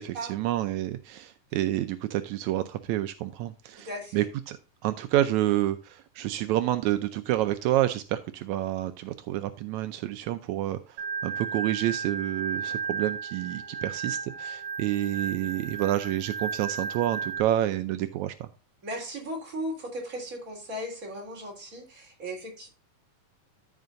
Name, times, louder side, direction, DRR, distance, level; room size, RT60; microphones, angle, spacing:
voice 1, 0.0-3.9 4.1-4.6 4.8-18.5, right 14 dB, 85° right, 9 dB, 1.6 m, -29 dB
voice 2, 3.8-4.3 18.8-22.7, equal, 25° right, 0 dB, 3.2 m, -36 dB
Organ, 11.0-17.4, right 6 dB, 60° right, 2.5 m, -34 dB
14.5 x 5.6 x 2.5 m, 0.33 s
omnidirectional pair, 4.0 m